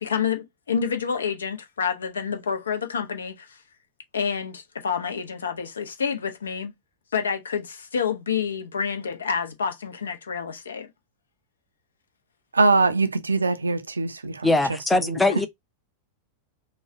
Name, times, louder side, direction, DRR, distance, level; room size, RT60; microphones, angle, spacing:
voice 1, 0.0-3.6 4.1-6.7 7.1-10.9, left 6 dB, 70° left, 0.6 m, -28 dB
voice 2, 12.5-14.6 14.9-15.2, right 3 dB, 75° right, 0.4 m, -22 dB
voice 3, 14.4-15.5, left 2 dB, 10° left, 0.5 m, -21 dB
3.1 x 2.2 x 3.6 m
figure-of-eight pair, 90°, 0 cm